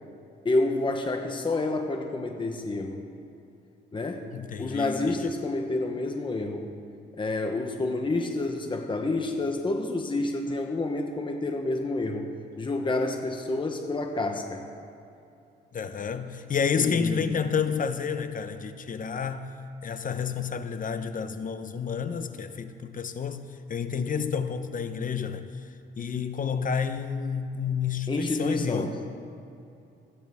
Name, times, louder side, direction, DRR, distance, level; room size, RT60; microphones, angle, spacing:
voice 1, 0.4-3.0 3.9-4.3 4.6-6.7 7.2-12.3 12.6-14.7 16.8-17.4 28.1-29.0, left 2 dB, 25° left, 1.1 m, -29 dB
voice 2, 4.3-5.3 15.7-19.6 19.8-23.4 23.7-25.5 26.0-28.9, left 6 dB, 40° left, 0.9 m, -30 dB
28.5 x 10.0 x 3.6 m
cardioid pair, 90°, 20 cm